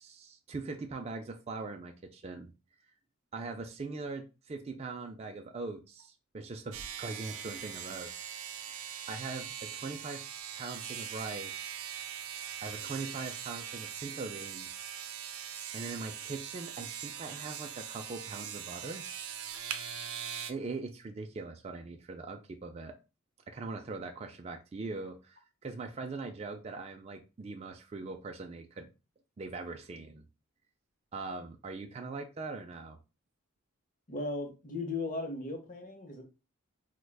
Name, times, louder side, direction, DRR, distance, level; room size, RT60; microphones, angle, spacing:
voice 1, 0.0-2.5 3.3-8.8 9.1-10.2 10.6-11.8 12.6-14.9 15.7-19.1 20.5-22.9 23.5-28.9 29.4-30.3 31.1-33.0, right 3 dB, 30° right, 4 dB, 0.3 m, -41 dB
sound 1, 6.7-20.5, right 8 dB, 90° right, 0.5 m, -41 dB
voice 2, 34.1-36.2, left 3 dB, 40° left, 4 dB, 0.7 m, -37 dB
4.6 x 2.1 x 2.2 m, 0.30 s
head